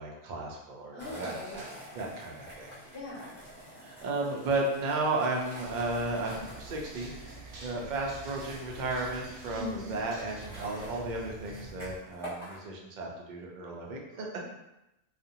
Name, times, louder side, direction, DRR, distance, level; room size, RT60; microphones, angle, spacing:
voice 1, 0.0-1.6 1.9-2.7 3.8-7.3 7.6-14.3, right 2 dB, 60° right, -1 dB, 0.5 m, -34 dB
voice 2, 0.9-1.6 2.9-3.3 9.5-9.9, left 3 dB, 55° left, -4 dB, 0.8 m, -40 dB
sound 1, 1.0-12.6, equal, ahead, 0.7 m, -48 dB
sound 2, 5.6-12.0, right 2 dB, 80° right, 0.9 m, -47 dB
2.4 x 2.1 x 2.8 m, 0.91 s
omnidirectional pair, 1.2 m